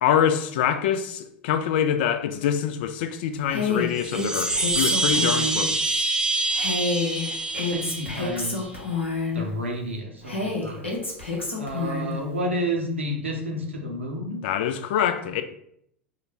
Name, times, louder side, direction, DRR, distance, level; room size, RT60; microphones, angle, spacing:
voice 1, 0.0-6.0 14.4-15.4, left 9 dB, 55° left, 0.3 m, -25 dB
Female speech woman speaking, 3.5-5.6 6.5-9.4 10.3-12.2, left 3 dB, 85° left, 0.8 m, -28 dB
Chime, 3.9-8.6, right 2 dB, 10° right, 0.4 m, -26 dB
voice 2, 7.6-8.7 9.3-10.9 11.6-14.4, equal, 85° right, 0.8 m, -30 dB
5.0 x 2.1 x 2.8 m
figure-of-eight pair, 80°, 6 cm